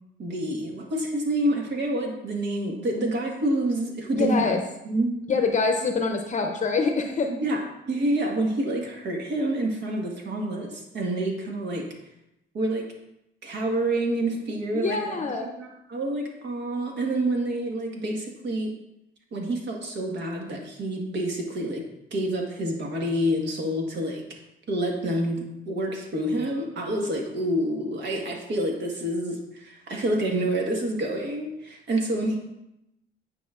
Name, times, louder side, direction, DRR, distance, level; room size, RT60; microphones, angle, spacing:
voice 1, 0.2-4.6 4.8-5.2 7.3-11.9 12.5-12.9 13.4-18.7 19.3-21.8 22.1-24.2 24.7-32.4, right 1 dB, 60° right, 1 dB, 1.5 m, -28 dB
voice 2, 4.2-4.6 5.3-7.3 14.7-15.5 32.2-32.4, left 4 dB, 40° left, 4 dB, 0.7 m, -25 dB
9.1 x 4.9 x 2.5 m, 0.85 s
cardioid pair, 90°, 20 cm